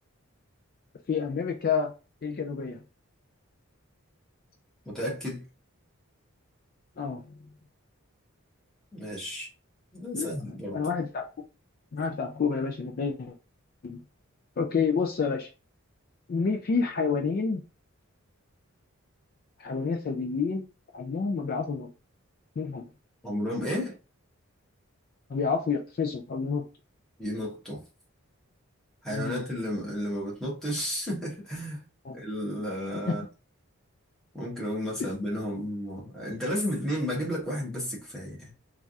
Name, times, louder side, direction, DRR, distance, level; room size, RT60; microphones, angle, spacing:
voice 1, 1.1-1.9 2.2-2.8 7.0-7.5 10.1-10.3 10.7-11.3 11.9-13.3 13.8-14.0 14.6-15.5 16.3-17.6 19.6-20.7 20.9-21.9 22.6-22.9 25.3-26.7 29.1-29.4 32.1-32.2 32.9-33.2, left 5 dB, 40° left, 0.3 m, -29 dB
voice 2, 4.9-5.5 8.9-9.5 9.9-10.9 23.2-24.0 27.2-27.8 29.0-31.8 32.1-33.2 34.3-38.5, equal, ahead, 1.1 m, -32 dB
3.3 x 2.4 x 2.6 m
head